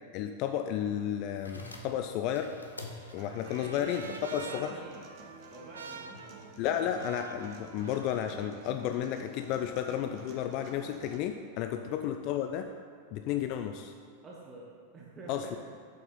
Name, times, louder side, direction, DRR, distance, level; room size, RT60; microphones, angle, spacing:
voice 1, 0.1-2.6 3.1-4.7 6.6-12.7 13.1-13.9 15.3-15.6, left 10 dB, 40° left, 7 dB, 0.4 m, -32 dB
sound 1, 1.3-8.1, left 2 dB, 80° left, 0.8 m, -51 dB
Trumpet, 2.3-8.6, right 5 dB, 70° right, 0.5 m, -48 dB
Human voice / Acoustic guitar, 3.2-11.2, right 3 dB, 40° right, 0.9 m, -51 dB
voice 2, 3.5-5.0 5.5-6.2 11.8-12.0 14.2-15.6, right 2 dB, 25° right, -4 dB, 1.2 m, -48 dB
7.6 x 5.4 x 5.5 m, 2.2 s
figure-of-eight pair, 90°, 0 cm